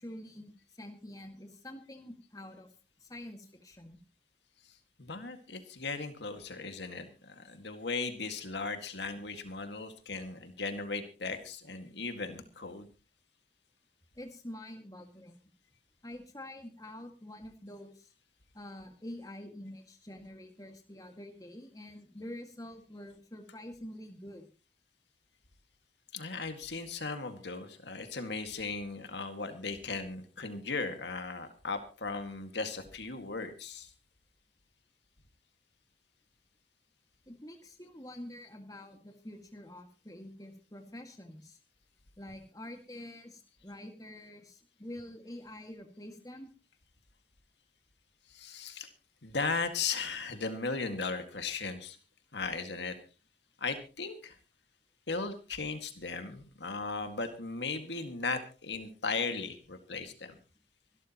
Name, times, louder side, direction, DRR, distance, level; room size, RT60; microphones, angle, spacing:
voice 1, 0.0-2.7 3.0-4.0 14.2-15.3 16.0-18.1 18.5-24.5 37.3-41.6 42.2-46.5, left 1 dB, 20° left, 4 dB, 2.0 m, -47 dB
voice 2, 4.7-12.9 26.1-33.9 48.3-48.9 49.2-52.0 52.3-53.0 53.6-54.4 55.1-60.4, left 4 dB, 75° left, 7 dB, 2.0 m, -37 dB
25.0 x 12.5 x 3.0 m, 0.32 s
head